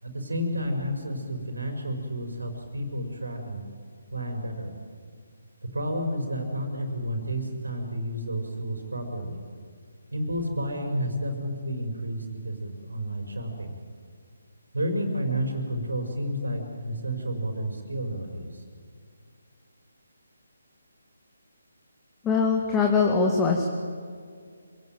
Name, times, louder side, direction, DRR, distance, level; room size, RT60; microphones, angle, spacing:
voice 1, 0.0-3.7 4.1-4.7 5.7-9.4 10.1-13.7 14.7-18.6, equal, 85° right, 4 dB, 5.5 m, -31 dB
voice 2, 22.2-23.7, left 5 dB, 10° left, 1 dB, 2.1 m, -22 dB
26.5 x 18.0 x 9.2 m, 2.1 s
figure-of-eight pair, 150°, 0 cm